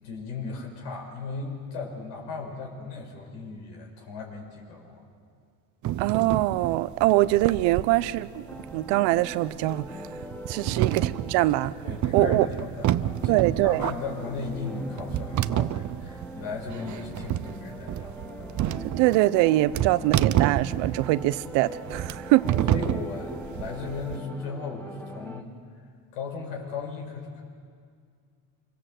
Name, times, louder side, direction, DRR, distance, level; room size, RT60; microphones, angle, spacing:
voice 1, 0.0-5.0 10.7-11.1 11.8-18.2 22.7-25.5 26.1-27.4, left 4 dB, 85° left, 1 dB, 6.0 m, -36 dB
sound 1, 5.8-24.2, right 13 dB, 45° right, 0.7 m, -29 dB
voice 2, 6.0-8.4 8.7-9.9 10.5-11.7 12.1-12.5 13.3-13.8 18.9-22.5, right 17 dB, 75° right, 16 dB, 0.9 m, -23 dB
sound 2, 8.0-25.4, equal, 5° left, 1.7 m, -42 dB
27.0 x 24.0 x 7.8 m, 2.1 s
supercardioid pair, 100°, 43 cm